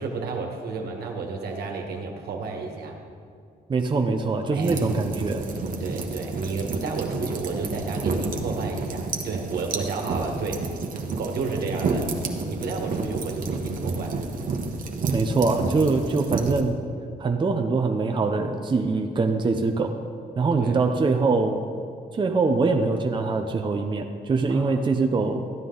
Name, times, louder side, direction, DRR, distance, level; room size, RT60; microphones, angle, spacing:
voice 1, 0.0-3.0 4.5-4.9 5.8-10.7 10.9-12.1 12.5-14.2 20.5-20.8 24.5-24.8, right 4 dB, 80° right, 2 dB, 1.5 m, -32 dB
voice 2, 3.7-5.4 15.1-16.8 17.2-20.0 20.4-21.6 22.1-25.5, right 4 dB, 30° right, 4 dB, 0.7 m, -23 dB
sound 1, 4.6-16.6, right 3 dB, 55° right, 1.1 m, -30 dB
13.5 x 9.6 x 3.9 m, 2.3 s
cardioid pair, 95°, 16 cm